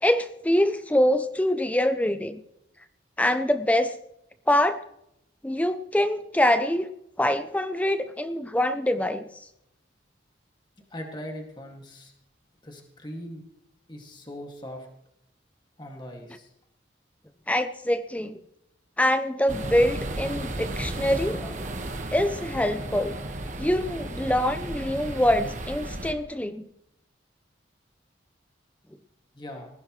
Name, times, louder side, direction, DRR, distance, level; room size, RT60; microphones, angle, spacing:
voice 1, 0.0-2.4 3.2-3.9 4.5-4.8 5.4-6.9 7.2-9.5 17.5-18.4 19.0-21.5 22.1-23.1 23.6-26.7, left 1 dB, 5° left, 10 dB, 0.5 m, -24 dB
voice 2, 10.9-12.1 12.6-13.4 13.9-14.9 15.8-16.5 29.3-29.7, equal, 25° left, 2 dB, 2.1 m, -40 dB
sound 1, 19.5-26.1, right 1 dB, 40° right, 1.4 m, -34 dB
20.0 x 15.5 x 3.2 m, 0.79 s
head